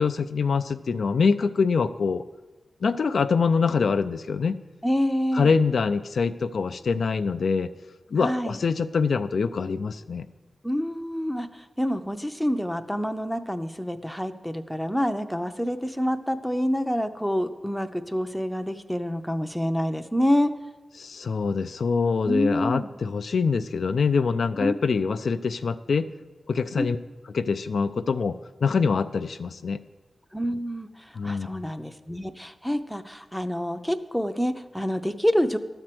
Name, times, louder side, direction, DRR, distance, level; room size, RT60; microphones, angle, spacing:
voice 1, 0.0-2.2 2.8-4.6 5.3-7.7 8.1-10.3 21.0-26.1 26.5-27.0 27.3-29.8 31.2-31.5, left 5 dB, 80° left, 10 dB, 0.3 m, -24 dB
voice 2, 4.8-5.5 8.2-8.6 10.6-20.5 22.2-22.9 24.6-24.7 26.8-26.9 30.3-35.6, equal, ahead, 8 dB, 0.6 m, -27 dB
12.5 x 4.4 x 7.6 m, 1.2 s
wide cardioid pair, 80°, 0 cm